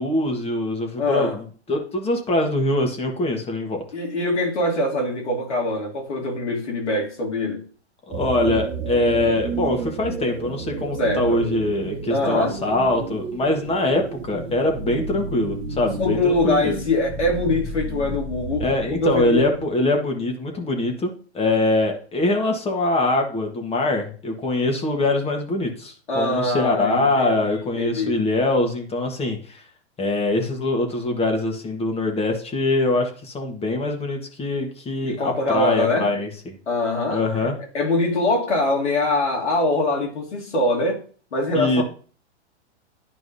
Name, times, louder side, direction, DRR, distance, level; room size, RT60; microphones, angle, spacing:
voice 1, 0.0-3.8 8.1-16.8 18.6-29.6 30.0-36.6 37.1-37.6 41.5-41.8, left 2 dB, 15° left, 1.5 m, -23 dB
voice 2, 1.0-1.4 3.9-7.6 11.0-11.4 12.1-12.6 16.0-19.5 26.1-27.4 27.8-28.2 35.0-36.1 36.7-37.5 37.7-41.0 41.3-41.8, left 2 dB, 90° left, 2.7 m, -23 dB
sound 1, 8.1-19.6, right 3 dB, 35° right, 1.4 m, -32 dB
11.5 x 4.6 x 2.7 m
hypercardioid pair, 115°, 34 cm